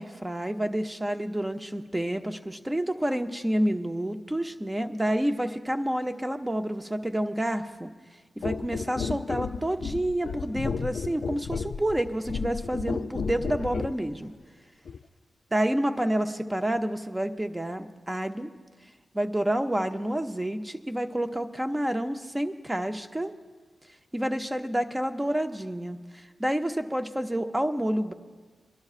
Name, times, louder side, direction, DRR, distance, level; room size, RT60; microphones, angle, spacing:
voice 1, 0.0-7.9 8.4-14.3 15.5-18.5 19.1-23.3 24.1-28.1, right 1 dB, 10° right, 7 dB, 0.6 m, -29 dB
sound 1, 8.4-14.0 14.9-15.0, left 5 dB, 65° left, 0.4 m, -33 dB
25.0 x 11.5 x 2.4 m, 1.4 s
wide cardioid pair, 125°, 0 cm